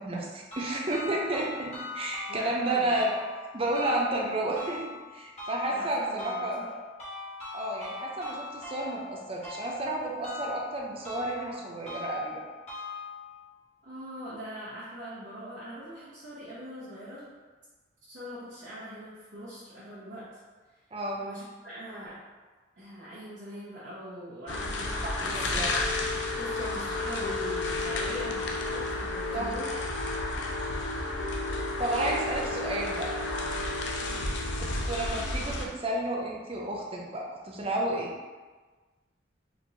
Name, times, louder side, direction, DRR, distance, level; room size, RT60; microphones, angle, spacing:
voice 1, 0.0-3.1 3.5-4.8 5.1-6.8 7.5-12.4 20.9-21.2 25.0-25.7 29.3-29.5 31.8-33.1 34.9-38.1, right 1 dB, 30° right, -2 dB, 0.5 m, -31 dB
sound 1, 0.5-13.5, left 3 dB, 35° left, 1.1 m, -41 dB
voice 2, 2.3-2.9 5.7-6.7 13.8-17.3 18.1-20.3 21.2-22.2 22.8-25.7 26.4-29.8 34.0-34.3, equal, 65° right, -11 dB, 1.1 m, -42 dB
sound 2, 24.5-35.7, left 2 dB, 70° left, 0.5 m, -31 dB
4.4 x 3.0 x 2.6 m, 1.3 s
head